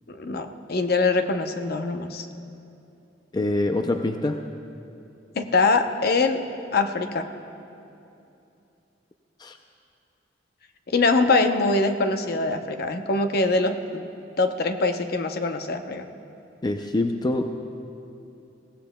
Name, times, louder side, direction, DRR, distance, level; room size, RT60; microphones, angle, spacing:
voice 1, 0.1-2.3 5.3-6.4 6.7-7.3 10.9-14.1 14.4-16.1, left 3 dB, 55° left, 7 dB, 0.7 m, -23 dB
voice 2, 3.3-4.4 9.4-9.6 16.6-17.5, left 2 dB, 20° left, 5 dB, 0.4 m, -25 dB
22.5 x 17.0 x 2.2 m, 2.8 s
head